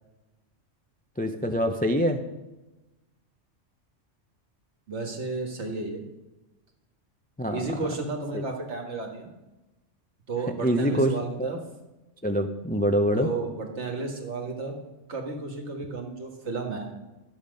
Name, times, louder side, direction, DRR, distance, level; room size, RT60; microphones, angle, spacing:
voice 1, 1.2-2.2 7.4-7.6 8.3-8.4 10.6-11.1 11.4-11.5 12.2-13.3, equal, 15° left, 5 dB, 0.3 m, -24 dB
voice 2, 4.9-6.0 7.5-9.3 10.3-11.6 13.2-14.8 15.1-16.9, right 3 dB, 70° right, 2 dB, 1.8 m, -33 dB
11.5 x 7.2 x 5.2 m, 1.1 s
omnidirectional pair, 1.2 m